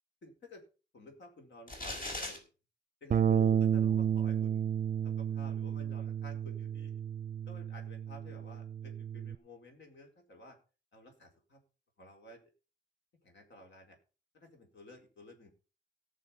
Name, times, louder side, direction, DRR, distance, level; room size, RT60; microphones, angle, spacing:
voice 1, 0.2-0.6 0.9-2.5 3.0-4.7 5.0-6.9 7.5-10.6 10.9-11.6 12.0-12.4 13.2-14.0 14.3-15.5, left 1 dB, 75° left, 3 dB, 4.3 m, -53 dB
sound 1, 1.7-2.4, left 1 dB, 50° left, 5.0 m, -38 dB
Bass guitar, 3.1-9.4, right 8 dB, 50° right, 0.5 m, -31 dB
18.0 x 6.6 x 5.5 m, 0.35 s
wide cardioid pair, 135°, 19 cm